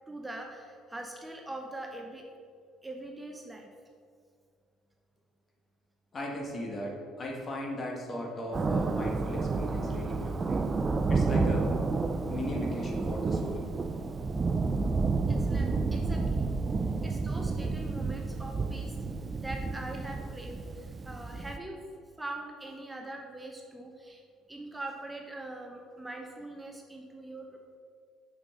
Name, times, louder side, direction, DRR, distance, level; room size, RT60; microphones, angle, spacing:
voice 1, 0.1-2.2 2.8-3.7 15.3-16.5 17.0-19.0 19.4-21.8 22.2-24.2 24.5-27.8, right 2 dB, 15° right, 1 dB, 0.7 m, -42 dB
voice 2, 6.1-10.6 11.1-11.7 12.3-13.7, left 1 dB, 35° left, -1 dB, 1.4 m, -37 dB
Thunder, 8.5-21.6, right 3 dB, 35° right, 0.3 m, -30 dB
5.5 x 4.9 x 3.6 m, 2.1 s
hypercardioid pair, 65°, 0 cm